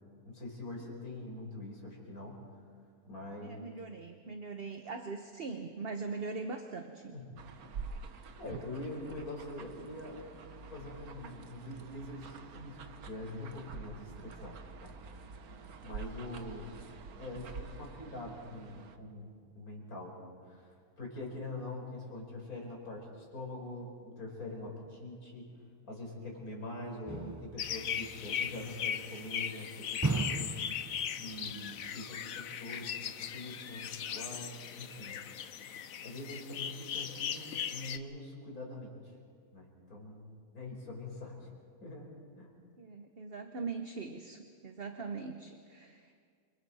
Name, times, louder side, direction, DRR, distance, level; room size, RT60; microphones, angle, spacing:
voice 1, 0.3-2.4 3.0-3.6 7.1-7.4 8.4-10.3 10.7-12.8 13.1-14.5 14.8-14.9 15.8-16.9 17.2-25.5 25.9-30.5 31.2-35.2 36.0-38.9 39.5-40.3 40.5-41.5 41.8-42.5, left 2 dB, 90° left, -1 dB, 5.3 m, -44 dB
voice 2, 3.4-7.2 27.1-27.3 42.8-46.2, right 4 dB, 45° right, 5 dB, 1.2 m, -41 dB
sound 1, 7.4-19.0, right 5 dB, 85° right, 1.6 m, -47 dB
sound 2, 27.1-28.8 30.0-31.6 31.8-31.9, right 3 dB, 30° right, 0.3 m, -37 dB
sound 3, 27.6-38.0, left 8 dB, 70° left, 1.2 m, -38 dB
29.0 x 26.5 x 4.3 m, 2.1 s
omnidirectional pair, 1.5 m